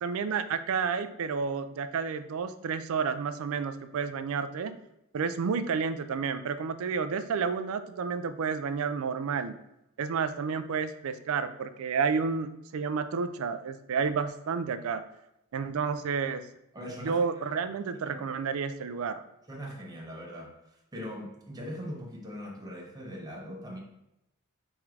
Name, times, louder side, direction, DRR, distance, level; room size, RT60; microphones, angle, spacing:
voice 1, 0.0-4.7 5.1-9.6 10.0-15.0 15.5-16.4 17.0-19.2, right 5 dB, 65° right, 10 dB, 0.4 m, -30 dB
voice 2, 16.7-17.5 17.9-18.2 19.5-23.8, equal, 15° right, -2 dB, 0.9 m, -41 dB
3.6 x 3.1 x 4.7 m, 0.86 s
head